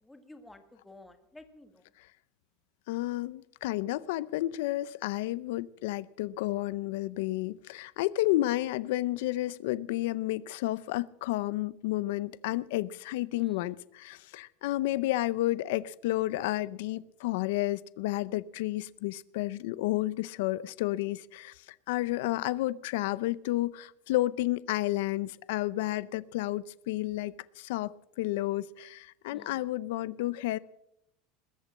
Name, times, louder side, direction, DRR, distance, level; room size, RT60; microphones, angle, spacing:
voice 1, 0.0-1.8 13.4-13.5 29.3-29.6, left 2 dB, 5° left, 7 dB, 1.4 m, -53 dB
voice 2, 2.9-30.6, left 16 dB, 75° left, 18 dB, 0.5 m, -31 dB
21.0 x 8.3 x 7.4 m, 0.77 s
supercardioid pair, 170°, 0 cm